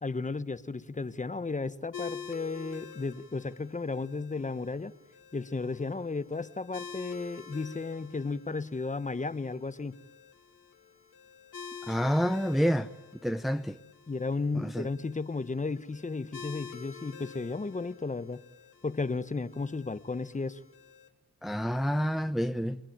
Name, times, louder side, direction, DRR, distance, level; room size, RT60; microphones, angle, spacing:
voice 1, 0.0-4.9 5.3-10.0 14.1-18.4 18.8-20.6, left 3 dB, 20° left, 1.2 m, -34 dB
sound 1, 1.9-21.1, left 7 dB, 75° left, 3.2 m, -48 dB
voice 2, 11.9-12.9 13.2-13.8 14.5-14.9 21.4-22.8, equal, ahead, 0.9 m, -28 dB
29.5 x 21.0 x 8.9 m
cardioid pair, 80°, 33 cm